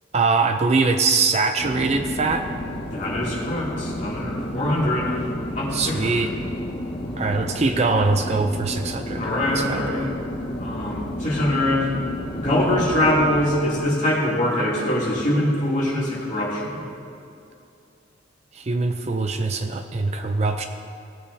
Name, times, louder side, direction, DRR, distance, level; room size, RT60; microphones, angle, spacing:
voice 1, 0.1-2.4 5.7-6.3 7.2-9.2 9.5-10.0 18.5-20.6, right 3 dB, 35° right, 6 dB, 0.5 m, -22 dB
sound 1, 1.6-13.5, left 1 dB, 60° left, 1.3 m, -31 dB
voice 2, 2.9-5.2 5.5-6.4 9.2-10.1 10.6-11.9 12.4-16.8, left 1 dB, 40° left, -7 dB, 2.8 m, -23 dB
18.0 x 8.5 x 2.8 m, 2.6 s
head